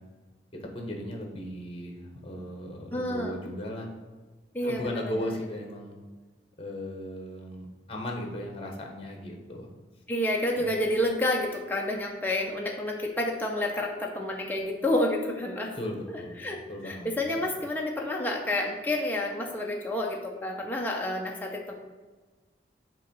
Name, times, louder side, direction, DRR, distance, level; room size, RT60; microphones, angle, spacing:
voice 1, 0.5-3.9 4.6-6.0 6.6-9.7 10.5-10.7 15.8-17.1, left 1 dB, 30° left, 2 dB, 1.0 m, -37 dB
voice 2, 2.9-3.4 4.5-5.1 10.1-15.7 16.1-16.6 16.8-21.7, left 1 dB, 10° left, -1 dB, 0.5 m, -29 dB
7.3 x 3.1 x 5.2 m, 1.3 s
head